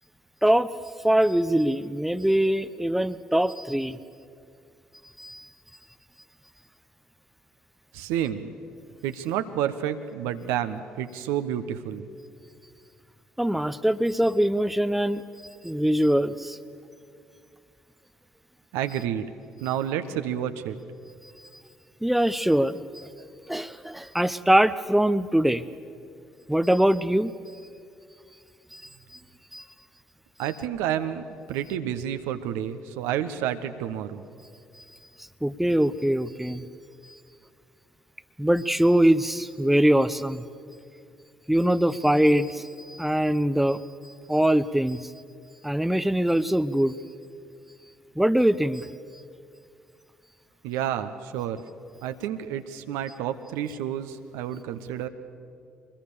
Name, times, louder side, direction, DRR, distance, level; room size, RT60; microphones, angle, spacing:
voice 1, 1.0-4.0 5.2-5.5 13.4-15.2 15.6-16.6 22.0-23.0 23.5-25.6 26.5-27.3 28.7-28.8 29.5-29.6 35.4-36.7 38.4-40.4 41.5-43.8 44.3-45.1 45.6-47.0 48.2-48.9, right 1 dB, 5° right, 13 dB, 0.8 m, -23 dB
voice 2, 7.9-8.5 9.0-12.0 18.7-19.3 19.6-20.8 30.4-34.2 50.6-51.6 52.0-55.1, right 10 dB, 70° right, 9 dB, 1.0 m, -30 dB
24.0 x 21.0 x 7.0 m, 2.4 s
figure-of-eight pair, 45°, 5 cm